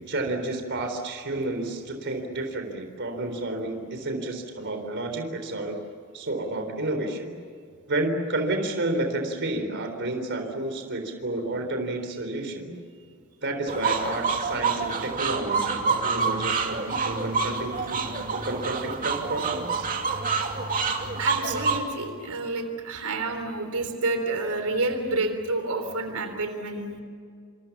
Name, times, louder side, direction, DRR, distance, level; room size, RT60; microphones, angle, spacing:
voice 1, 0.0-5.8 6.1-7.3 7.9-12.7 13.4-19.9, right 2 dB, 55° right, 5 dB, 3.9 m, -30 dB
sound 1, 13.7-21.8, right 4 dB, 40° right, 2.7 m, -27 dB
voice 2, 21.2-27.0, right 2 dB, 85° right, 6 dB, 3.6 m, -29 dB
28.0 x 27.5 x 7.3 m, 2.2 s
head